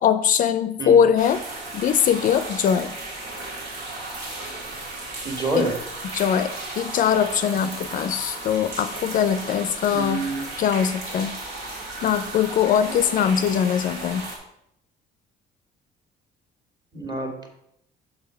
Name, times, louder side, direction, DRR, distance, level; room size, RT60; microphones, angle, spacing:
voice 1, 0.0-1.4 1.7-2.9 5.6-5.7 6.1-10.2 10.6-11.3 12.0-14.2, left 8 dB, 50° left, 12 dB, 0.4 m, -21 dB
sound 1, 1.2-14.4, right 2 dB, 80° right, 2.0 m, -35 dB
voice 2, 5.2-5.7 9.9-10.4 16.9-17.5, right 2 dB, 25° right, 2 dB, 1.7 m, -27 dB
6.8 x 5.6 x 4.3 m, 0.78 s
cardioid pair, 110°, 17 cm